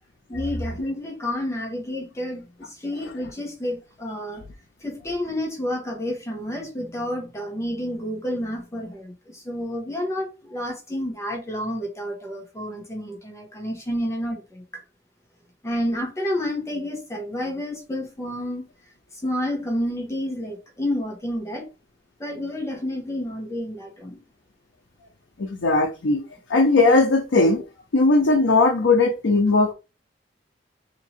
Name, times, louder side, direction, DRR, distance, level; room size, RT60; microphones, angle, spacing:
voice 1, 0.3-4.4 4.8-14.8 15.6-18.7 19.2-21.7 22.2-24.2, left 1 dB, 15° left, 0.9 m, -30 dB
voice 2, 25.4-26.2 26.5-27.6 27.9-29.7, left 3 dB, 85° left, 0.6 m, -18 dB
2.9 x 2.7 x 4.2 m
head